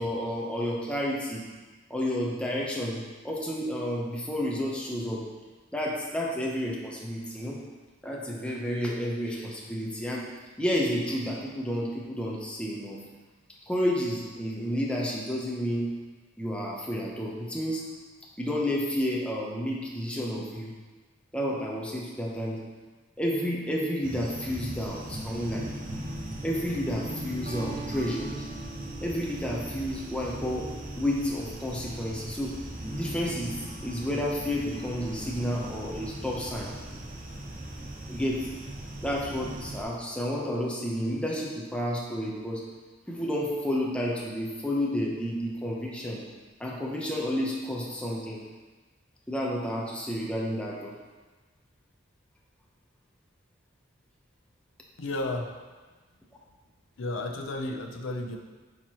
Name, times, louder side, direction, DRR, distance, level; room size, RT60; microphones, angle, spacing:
voice 1, 0.0-1.4 1.9-5.2 5.7-7.6 8.0-10.3 10.6-13.0 13.7-15.9 16.4-17.8 18.4-20.7 21.3-22.6 23.2-25.7 26.4-28.3 29.0-30.7 31.0-32.5 32.9-36.7 38.1-38.5 39.0-42.6 43.1-46.2 46.6-48.4 49.3-50.9, equal, 5° left, -3 dB, 0.8 m, -31 dB
sound 1, 24.0-39.8, right 1 dB, 45° right, 0.9 m, -38 dB
voice 2, 55.0-55.5 57.0-58.4, left 2 dB, 85° left, 4 dB, 0.6 m, -32 dB
8.7 x 4.6 x 3.0 m, 1.3 s
head